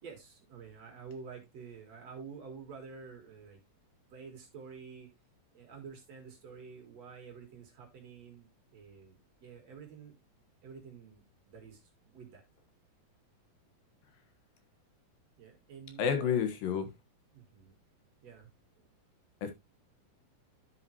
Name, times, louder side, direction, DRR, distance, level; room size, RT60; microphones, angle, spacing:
voice 1, 0.0-3.6 4.1-5.1 5.5-10.2 10.6-12.4 15.4-16.3 17.3-17.8 18.2-18.5, right 5 dB, 50° right, 2.7 m, -49 dB
voice 2, 16.0-16.9 19.4-19.5, left 7 dB, 75° left, 2.9 m, -30 dB
11.0 x 5.7 x 2.9 m
omnidirectional pair, 4.2 m